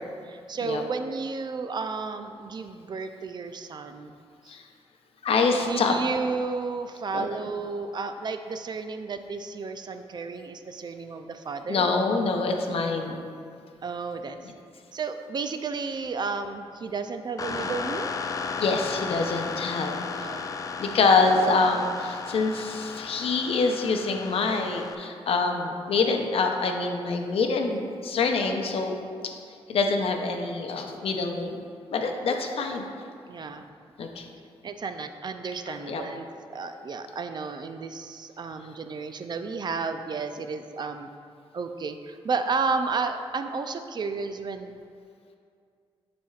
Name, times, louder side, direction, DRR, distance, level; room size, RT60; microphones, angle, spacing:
voice 1, 0.0-4.1 4.4-4.6 5.6-11.9 13.8-14.4 14.9-18.1 20.2-20.5 33.3-33.6 34.6-41.1 41.5-44.8, right 4 dB, 45° right, 8 dB, 0.4 m, -32 dB
voice 2, 5.2-6.0 7.1-7.2 11.7-13.2 18.6-20.1 20.8-29.0 29.7-31.6 31.9-32.9 34.0-34.3 35.9-36.0, left 4 dB, 70° left, 3 dB, 0.7 m, -25 dB
sound 1, 17.4-25.0, left 5 dB, 35° left, 0.4 m, -34 dB
10.0 x 4.2 x 2.4 m, 2.3 s
cardioid pair, 85°, 10 cm